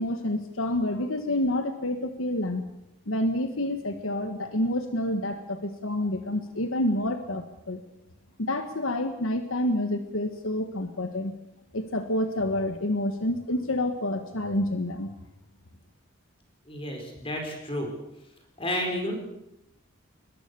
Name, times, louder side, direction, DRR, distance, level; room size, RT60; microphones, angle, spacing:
voice 1, 0.0-2.6 3.1-7.8 8.4-11.3 11.7-15.1, left 1 dB, 80° left, 7 dB, 1.5 m, -28 dB
voice 2, 16.7-17.9 18.6-19.2, left 1 dB, 25° left, 3 dB, 4.7 m, -31 dB
22.0 x 21.5 x 6.9 m, 0.83 s
head